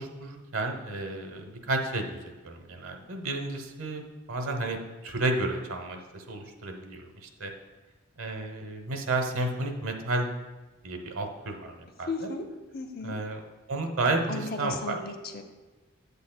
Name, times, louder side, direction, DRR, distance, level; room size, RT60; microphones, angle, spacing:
voice 1, 0.0-7.5 8.2-10.3 10.8-12.3 13.0-13.4 13.7-15.0, right 2 dB, 80° right, 4 dB, 0.9 m, -32 dB
voice 2, 12.1-12.4 12.7-13.2 14.3-15.4, left 3 dB, 45° left, 6 dB, 0.5 m, -35 dB
8.3 x 8.2 x 2.2 m, 1.2 s
head